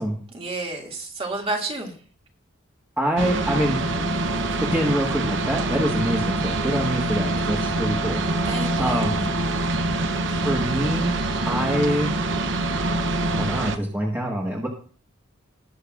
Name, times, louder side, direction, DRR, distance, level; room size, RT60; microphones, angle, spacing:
voice 1, 0.3-2.0 8.5-9.3, right 2 dB, 30° right, 0 dB, 2.5 m, -30 dB
voice 2, 3.0-4.1 4.6-8.4 8.8-9.4 10.4-11.2 11.4-12.6 13.4-14.7, equal, 10° right, -2 dB, 1.6 m, -25 dB
sound 1, 3.2-13.8, right 2 dB, 60° right, 0.9 m, -25 dB
19.0 x 7.9 x 2.5 m, 0.42 s
head